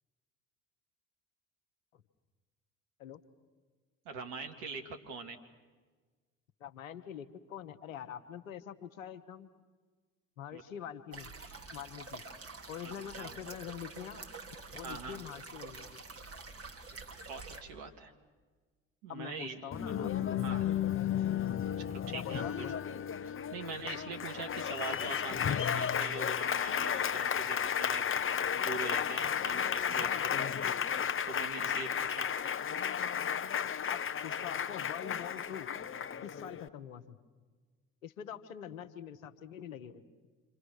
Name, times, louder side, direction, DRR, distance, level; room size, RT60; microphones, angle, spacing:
voice 1, 4.0-5.4 10.5-10.6 12.8-13.4 14.8-15.2 17.3-18.1 19.0-19.7 20.4-20.7 21.8-22.7 23.3-28.1 28.5-30.7 31.3-32.3, right 4 dB, 70° right, 4 dB, 2.3 m, -43 dB
voice 2, 6.6-9.5 10.4-11.3 11.7-12.2 12.7-14.2 14.7-16.0 19.1-20.5 21.9-22.8 29.9-30.5 32.1-32.2 33.9-35.7 36.2-37.2 38.0-40.0, left 9 dB, 85° left, 11 dB, 1.1 m, -45 dB
sound 1, 11.1-17.6, right 3 dB, 35° right, 3.2 m, -47 dB
Applause, 19.7-36.7, left 8 dB, 30° left, 0.9 m, -33 dB
27.0 x 26.0 x 6.5 m, 1.4 s
figure-of-eight pair, 50°, 39 cm